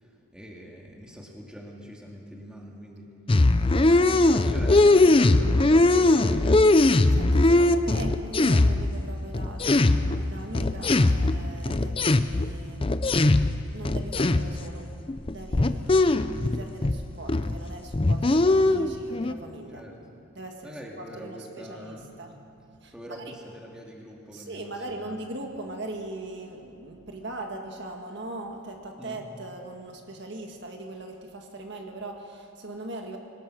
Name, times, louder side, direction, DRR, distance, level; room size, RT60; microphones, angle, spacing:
voice 1, 0.0-3.2 3.9-6.7 7.4-7.8 15.8-16.0 19.7-20.0 20.6-22.1 22.9-25.2 29.0-29.2, equal, 5° right, -1 dB, 2.3 m, -42 dB
sound 1, 3.3-9.0 9.3-13.6 13.8-14.6 15.1-17.0 17.3-17.6 17.9-19.3, left 2 dB, 25° left, 0.5 m, -20 dB
voice 2, 3.7-4.2 7.1-13.4 13.7-15.0 15.2-16.0 16.5-19.9 20.4-22.3 22.8-23.3 24.3-33.2, right 2 dB, 55° right, 3 dB, 1.8 m, -40 dB
23.0 x 19.0 x 6.2 m, 2.7 s
head